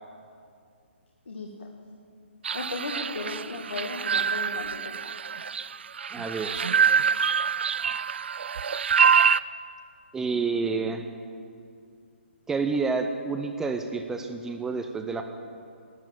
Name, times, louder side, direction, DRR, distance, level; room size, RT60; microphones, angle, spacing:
voice 1, 1.3-1.7 2.5-4.9, left 3 dB, 70° left, 1 dB, 1.5 m, -36 dB
sound 1, 2.4-9.4, right 6 dB, 60° right, 0.3 m, -25 dB
voice 2, 6.1-6.7 10.1-11.0 12.5-15.2, right 4 dB, 5° right, 6 dB, 0.5 m, -29 dB
11.0 x 10.5 x 8.6 m, 2.3 s
figure-of-eight pair, 135°, 7 cm